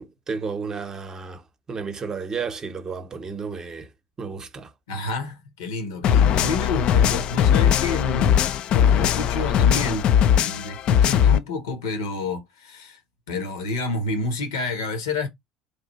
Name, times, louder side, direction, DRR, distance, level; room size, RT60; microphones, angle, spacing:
voice 1, 0.0-1.4 1.7-3.9 4.2-4.7, right 5 dB, 30° right, 0.8 m, -32 dB
voice 2, 4.9-8.4 8.7-10.1 10.3-13.0 13.3-15.3, left 3 dB, 70° left, 1.0 m, -29 dB
sound 1, 6.0-11.4, left 9 dB, 50° left, 0.3 m, -19 dB
3.3 x 2.6 x 4.0 m
figure-of-eight pair, 60°, 2 cm